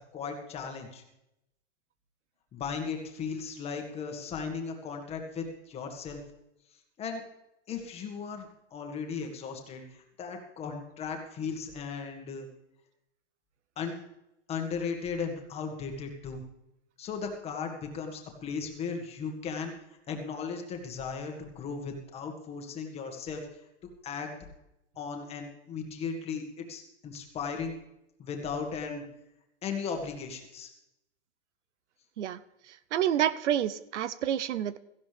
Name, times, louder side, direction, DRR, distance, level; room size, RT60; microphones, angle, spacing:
voice 1, 0.1-1.0 2.5-6.2 7.0-7.2 7.7-12.5 13.8-14.0 14.5-16.4 17.0-19.7 20.1-23.4 24.0-24.3 25.0-27.8 28.2-29.0 29.6-30.7, left 5 dB, 15° left, 3 dB, 1.8 m, -36 dB
voice 2, 32.9-34.8, right 10 dB, 85° right, 16 dB, 0.8 m, -28 dB
17.0 x 15.0 x 3.4 m, 0.86 s
supercardioid pair, 160°, 35 cm